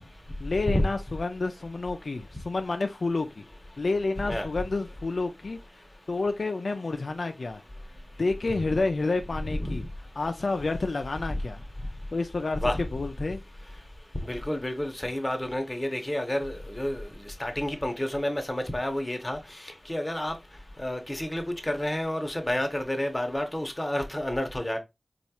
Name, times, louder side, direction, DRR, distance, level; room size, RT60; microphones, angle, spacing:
voice 1, 0.4-3.4 3.8-5.6 6.1-7.6 8.2-9.8 10.2-11.6 12.1-12.6 12.9-13.4, left 3 dB, 80° left, 0.3 m, -29 dB
voice 2, 14.3-17.0 17.4-19.4 19.9-20.3 20.8-24.8, left 1 dB, 25° left, 0.8 m, -29 dB
4.2 x 2.3 x 2.8 m
wide cardioid pair, 60°, 0 cm